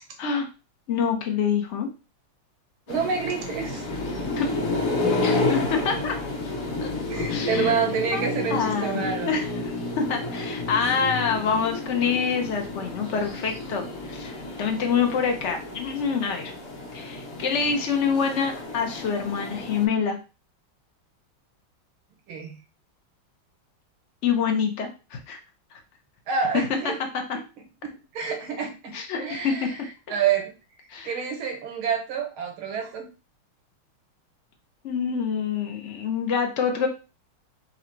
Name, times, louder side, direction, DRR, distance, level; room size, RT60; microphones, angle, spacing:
voice 1, 0.9-1.9 4.3-4.5 5.1-6.2 6.8-6.9 7.3-7.8 8.1-8.2 8.5-16.5 16.9-20.2 24.2-25.4 25.7-25.8 26.5-26.9 27.3-27.4 28.9-29.7 30.9-31.3 34.8-36.9, left 6 dB, 90° left, 3 dB, 0.6 m, -26 dB
sound 1, 2.9-19.9, left 2 dB, 55° left, 1.5 m, -30 dB
voice 2, 2.9-3.9 7.1-9.4 22.3-22.6 26.3-27.0 27.8-29.8 30.1-30.5 31.0-33.1, right 6 dB, 85° right, 5 dB, 1.9 m, -28 dB
4.0 x 2.6 x 4.3 m, 0.31 s
omnidirectional pair, 2.3 m